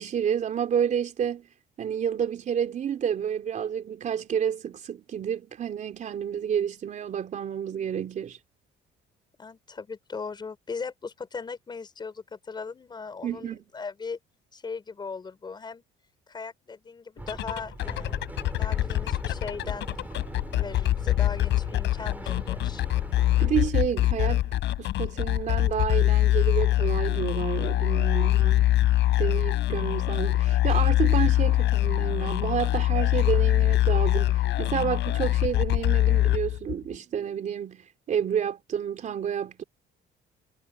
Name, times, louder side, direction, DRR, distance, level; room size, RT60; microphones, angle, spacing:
voice 1, 0.0-1.5 1.8-8.4 13.2-13.6 23.4-28.7 29.2-39.6, right 8 dB, 40° right, 3.7 m, -30 dB
voice 2, 9.4-14.2 14.5-15.8 16.3-19.9 20.5-22.8, left 5 dB, 20° left, 6.0 m, -38 dB
sound 1, 17.2-36.9, left 14 dB, 65° left, 6.5 m, -24 dB
sound 2, 17.2-23.7, right 2 dB, 10° right, 3.8 m, -41 dB
cardioid pair, 165°, 20 cm